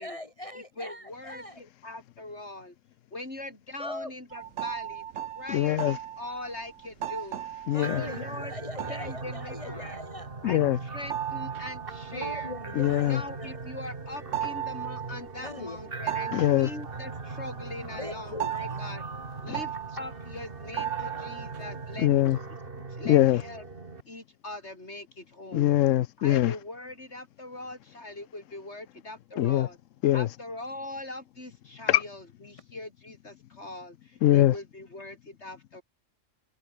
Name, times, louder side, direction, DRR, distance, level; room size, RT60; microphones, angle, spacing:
voice 1, 0.0-1.7 3.8-4.1 7.7-10.3 12.1-13.6 15.4-15.8 18.0-19.0, left 2 dB, 30° left, 0.9 m, -41 dB
voice 2, 0.5-2.8 3.1-5.0 5.3-7.4 7.8-8.5 8.9-10.0 10.4-12.5 13.0-19.0 19.4-22.1 22.9-23.6 24.1-25.7 26.2-29.8 30.1-35.8, left 2 dB, 55° left, 5.8 m, -41 dB
sound 1, 4.3-22.3, right 10 dB, 75° right, 1.2 m, -37 dB
voice 3, 5.5-6.0 7.7-8.0 10.4-10.8 12.8-13.2 16.3-16.7 22.0-22.4 23.1-23.4 25.5-26.5 29.4-29.7 30.0-30.3 31.9-32.0 34.2-34.5, left 13 dB, 75° left, 1.0 m, -22 dB
sound 2, 7.8-24.0, right 3 dB, 45° right, 2.3 m, -40 dB
omnidirectional pair, 1.3 m